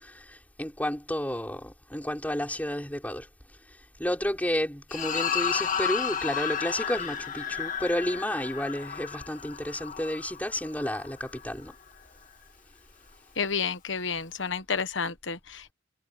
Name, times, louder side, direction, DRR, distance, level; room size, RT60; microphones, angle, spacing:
voice 1, 0.0-3.3 4.0-11.7, left 1 dB, 10° left, 5.9 m, -31 dB
sound 1, 4.9-11.4, left 7 dB, 45° left, 2.1 m, -32 dB
voice 2, 13.4-15.7, left 6 dB, 65° left, 1.3 m, -30 dB
head